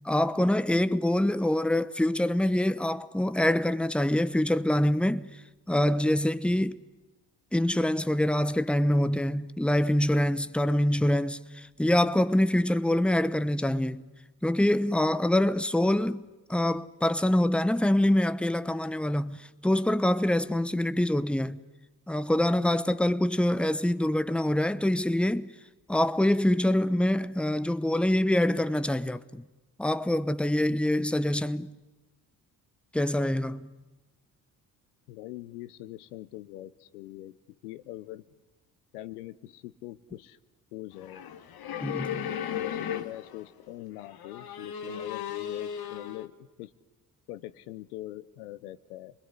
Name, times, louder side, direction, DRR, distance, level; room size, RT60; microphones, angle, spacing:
voice 1, 0.0-5.4 5.7-6.8 7.5-14.1 14.4-16.2 16.5-21.6 22.1-25.5 25.9-29.4 29.8-31.8 32.9-33.7 41.8-42.3, left 1 dB, ahead, 1.0 m, -25 dB
voice 2, 35.1-37.4 37.6-38.3 38.9-40.4 40.7-41.2 42.1-46.7 47.3-49.1, left 15 dB, 85° left, 0.9 m, -43 dB
sound 1, 41.0-43.5 44.0-46.3, left 9 dB, 55° left, 1.7 m, -36 dB
28.0 x 21.5 x 9.8 m
hypercardioid pair, 55°, 44 cm